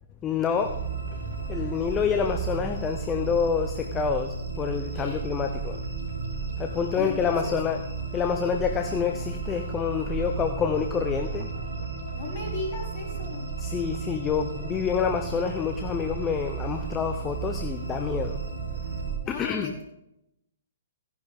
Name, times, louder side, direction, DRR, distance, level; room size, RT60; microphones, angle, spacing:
voice 1, 0.2-0.8 1.5-5.8 6.6-7.8 8.1-11.5 13.6-18.4 19.3-19.7, left 7 dB, 20° left, 6 dB, 0.9 m, -27 dB
sound 1, 0.6-19.2, right 5 dB, 65° right, 5.0 m, -33 dB
voice 2, 4.9-5.2 7.0-7.6 12.1-13.4 19.2-19.8, left 3 dB, 35° left, -5 dB, 6.2 m, -36 dB
16.5 x 10.5 x 3.7 m, 0.83 s
figure-of-eight pair, 125°, 0 cm